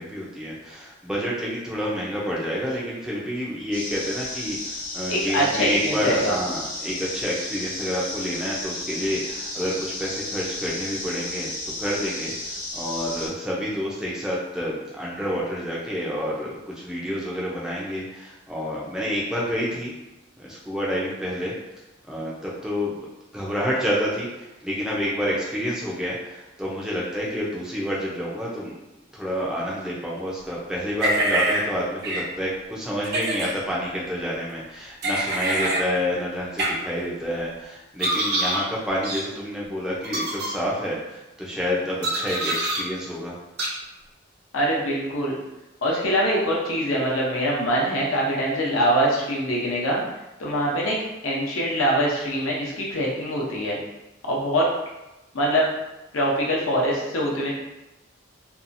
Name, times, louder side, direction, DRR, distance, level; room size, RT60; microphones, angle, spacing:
voice 1, 0.0-11.5 11.8-19.9 20.4-21.5 22.1-23.1 23.3-28.7 29.1-43.4, equal, 5° right, -5 dB, 0.4 m, -29 dB
sound 1, 3.7-13.3, left 2 dB, 40° left, 0.7 m, -33 dB
voice 2, 5.1-6.3 44.5-45.3 45.8-50.0 50.4-51.0 51.2-53.8 54.2-54.7 55.3-55.6 56.1-57.5, equal, 80° left, -3 dB, 0.8 m, -23 dB
sound 2, 31.0-31.6 32.0-32.2 33.0-33.5 35.0-35.8 36.6-36.7 38.0-38.6 39.0-39.2 40.0-40.5 42.0-42.8 43.6-43.7, right 1 dB, 50° right, 0.6 m, -25 dB
2.7 x 2.3 x 2.6 m, 0.98 s
head